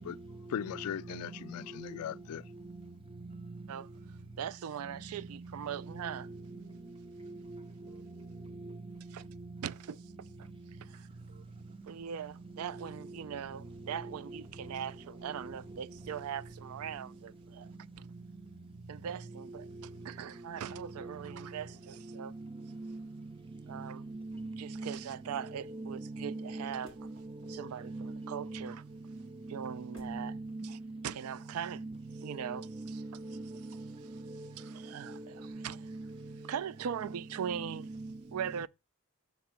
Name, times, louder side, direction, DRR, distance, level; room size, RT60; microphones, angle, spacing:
voice 1, 0.5-2.4, left 9 dB, 85° left, 0.3 m, -38 dB
voice 2, 4.4-6.3 7.9-8.0 9.1-9.2 9.6-10.0 10.4-10.5 10.8-11.4 11.9-17.7 18.0-18.1 18.9-19.7 20.0-22.3 23.7-24.0 24.6-26.9 27.5-28.8 29.5-30.3 30.6-30.8 31.0-31.8 32.2-32.7 34.6-35.9 36.5-37.9 38.3-38.7, right 8 dB, 80° right, 0.3 m, -40 dB
Stone on frozen lake, 21.5-30.3, equal, 60° right, 2.6 m, -63 dB
voice 3, 22.7-23.1 23.7-25.0 25.5-28.7 29.6-31.0 31.7-31.9 32.2-33.9 34.2-34.5 35.1-36.3 37.0-37.2 37.4-38.1, right 2 dB, 25° right, 0.7 m, -42 dB
6.0 x 3.9 x 5.6 m
head